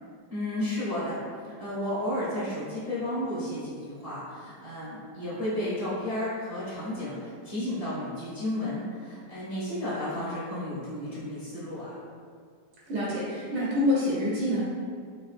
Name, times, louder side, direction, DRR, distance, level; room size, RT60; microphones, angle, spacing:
voice 1, 0.3-12.0, left 1 dB, 30° left, -11 dB, 0.8 m, -33 dB
voice 2, 12.9-14.6, left 1 dB, 80° right, -7 dB, 1.3 m, -26 dB
3.5 x 2.9 x 2.4 m, 2.1 s
omnidirectional pair, 1.9 m